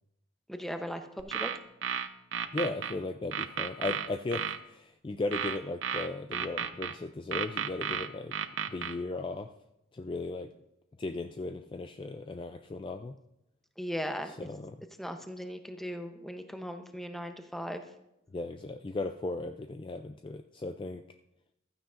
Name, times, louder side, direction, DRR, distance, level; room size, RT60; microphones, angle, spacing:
voice 1, 0.5-1.5 13.8-14.3 15.0-17.8, equal, ahead, 6 dB, 0.7 m, -38 dB
sound 1, 1.2-2.9 3.3-4.6 5.3-6.9 7.3-8.9, right 8 dB, 65° right, 0.6 m, -33 dB
voice 2, 2.5-8.3 8.7-9.5 9.9-10.5 11.0-13.1 14.3-14.8 18.3-21.0, left 2 dB, 25° left, 7 dB, 0.3 m, -36 dB
15.0 x 13.0 x 2.5 m, 0.87 s
head